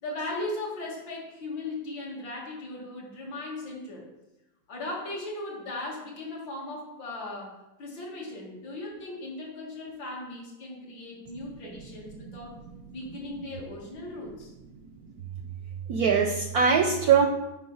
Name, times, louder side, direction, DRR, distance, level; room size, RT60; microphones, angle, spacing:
voice 1, 0.0-4.0 4.7-12.6 12.9-14.5, left 2 dB, 70° left, -3 dB, 2.5 m, -37 dB
voice 2, 15.9-17.3, right 6 dB, 70° right, 4 dB, 0.9 m, -22 dB
8.8 x 5.1 x 3.9 m, 0.96 s
omnidirectional pair, 2.1 m